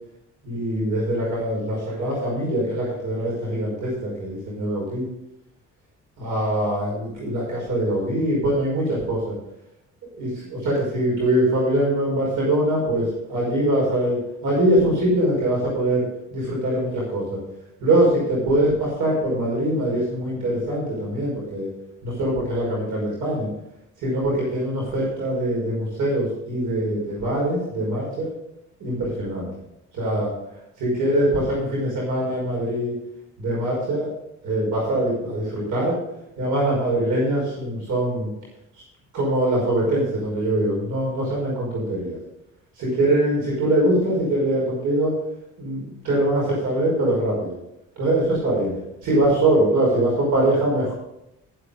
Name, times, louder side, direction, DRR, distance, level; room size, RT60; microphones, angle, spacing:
voice 1, 0.4-5.1 6.2-9.4 10.2-17.4 17.8-21.7 22.0-23.5 24.0-28.3 28.8-29.5 29.9-30.3 30.8-32.9 33.4-34.1 34.4-36.0 36.4-38.3 39.1-42.2 42.8-45.1 45.6-47.6 48.0-48.7 49.0-50.9, right 1 dB, 80° right, -4 dB, 5.5 m, -23 dB
13.5 x 8.2 x 5.2 m, 0.85 s
cardioid pair, 90°, 30 cm